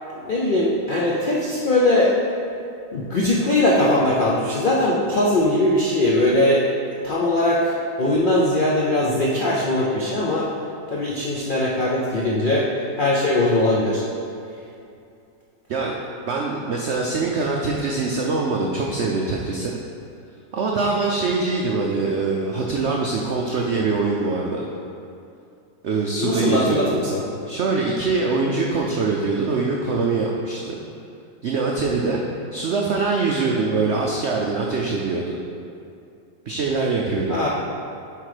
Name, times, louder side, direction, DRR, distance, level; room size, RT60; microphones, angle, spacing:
voice 1, 0.2-2.1 2.9-6.6 7.0-10.5 10.9-12.7 13.0-14.0 26.2-27.2 37.3-37.5, left 1 dB, 85° left, -4 dB, 0.4 m, -20 dB
voice 2, 16.2-19.8 20.5-24.7 25.8-26.9 27.5-30.8 31.4-32.2 32.5-35.4 36.5-37.4, right 3 dB, 90° right, -1 dB, 0.5 m, -23 dB
7.7 x 3.9 x 4.9 m, 2.6 s
omnidirectional pair, 1.9 m